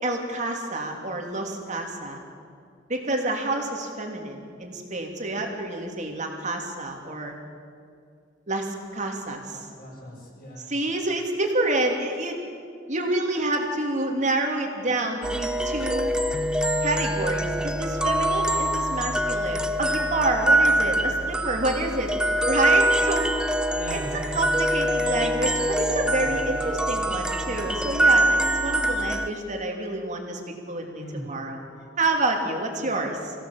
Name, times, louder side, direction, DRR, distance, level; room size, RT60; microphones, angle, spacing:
voice 1, 0.0-2.2 2.9-7.3 8.5-9.7 10.7-12.4 12.9-16.1 16.8-22.1 22.4-23.3 23.9-30.4 30.7-31.6 32.0-33.3, right 2 dB, 40° right, 2 dB, 2.9 m, -28 dB
voice 2, 9.5-10.7 23.7-24.1 30.9-32.0, left 1 dB, 50° left, -4 dB, 7.1 m, -41 dB
sound 1, 15.2-29.3, right 1 dB, 5° right, 0.8 m, -24 dB
25.5 x 16.5 x 7.2 m, 2.3 s
head